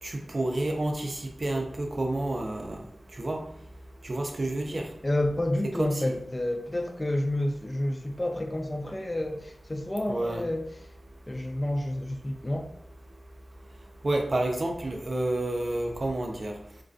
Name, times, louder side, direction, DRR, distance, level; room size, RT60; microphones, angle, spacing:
voice 1, 0.0-2.8 3.1-3.4 4.0-4.9 5.8-6.2 10.1-10.4 14.0-16.5, right 1 dB, 50° right, 2 dB, 0.4 m, -29 dB
voice 2, 5.0-10.6 11.3-12.7, left 1 dB, 25° left, 4 dB, 0.3 m, -29 dB
2.3 x 2.2 x 2.5 m, 0.68 s
cardioid pair, 60°, 0 cm